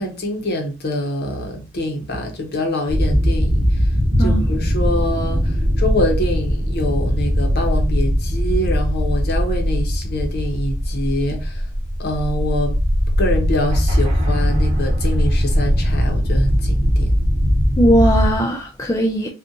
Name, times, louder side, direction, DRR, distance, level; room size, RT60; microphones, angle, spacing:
voice 1, 0.0-3.8 4.2-11.6 12.0-12.8 13.2-17.1, left 1 dB, 50° left, 0.9 m, -25 dB
sound 1, 2.9-18.3, equal, 30° right, 0.9 m, -19 dB
voice 2, 4.2-4.6 17.8-19.3, equal, 15° left, 0.4 m, -18 dB
3.7 x 2.4 x 2.6 m
head